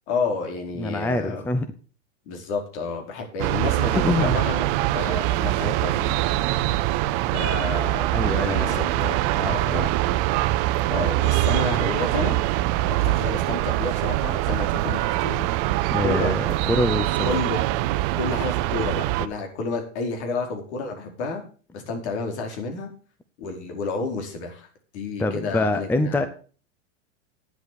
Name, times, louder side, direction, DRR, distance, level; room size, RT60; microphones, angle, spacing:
voice 1, 0.1-1.4 2.3-6.2 7.3-10.2 10.9-12.4 12.8-15.5 16.0-16.3 17.2-17.6 18.2-21.4 21.7-22.9 23.4-24.7 24.9-26.3, left 3 dB, 60° left, 3 dB, 4.5 m, -30 dB
voice 2, 0.8-1.7 4.0-4.4 8.1-8.9 9.4-9.8 15.9-17.4 25.2-26.3, left 2 dB, 5° left, 10 dB, 0.6 m, -25 dB
sound 1, 3.4-19.3, right 16 dB, 45° right, 0.8 m, -23 dB
10.0 x 8.0 x 6.9 m, 0.40 s
hypercardioid pair, 130°, 38 cm